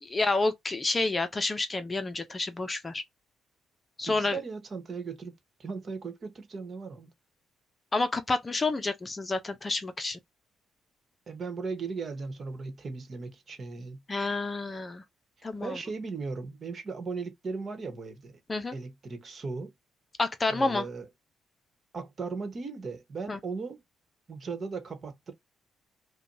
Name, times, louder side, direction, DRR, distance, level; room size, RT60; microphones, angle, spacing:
voice 1, 0.0-3.0 4.0-4.4 7.9-10.2 14.1-15.0 15.4-15.8 18.5-18.8 20.2-20.8 23.3-23.4, left 3 dB, 25° left, 0.6 m, -29 dB
voice 2, 4.1-5.3 5.6-7.1 11.3-14.0 15.6-18.4 18.7-19.7 20.5-21.1 21.9-23.8 24.3-25.3, right 4 dB, 45° right, 1.3 m, -37 dB
5.0 x 2.3 x 2.7 m
cardioid pair, 90°, 0 cm